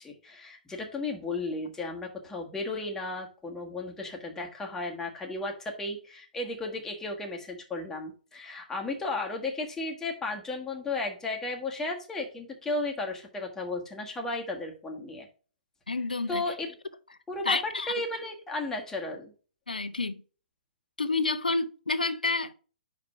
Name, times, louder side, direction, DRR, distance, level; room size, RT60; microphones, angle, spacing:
voice 1, 0.0-15.3 16.3-16.7 17.3-17.6 17.9-19.3, left 2 dB, 10° left, 1.4 m, -34 dB
voice 2, 15.9-16.4 17.4-17.9 19.7-20.2 21.0-22.5, left 3 dB, 90° left, 0.7 m, -29 dB
5.1 x 5.0 x 5.7 m
figure-of-eight pair, 130°, 5 cm